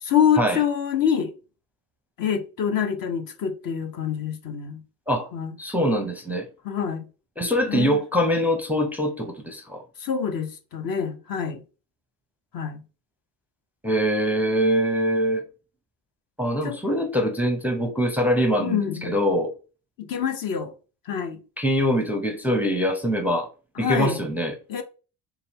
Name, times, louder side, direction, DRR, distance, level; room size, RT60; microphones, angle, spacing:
voice 1, 0.0-1.3 2.2-4.8 5.3-5.5 6.6-7.0 7.7-8.0 10.0-11.6 12.5-12.8 16.6-16.8 18.6-19.1 20.0-20.7 21.1-21.4 23.8-24.2 24.7-24.8, left 8 dB, 50° left, 0.8 m, -26 dB
voice 2, 5.6-6.5 7.4-9.8 13.8-15.4 16.4-19.5 21.6-23.5 23.8-24.5, equal, 5° right, 0.6 m, -23 dB
4.1 x 2.3 x 3.5 m
cardioid pair, 100°, 43 cm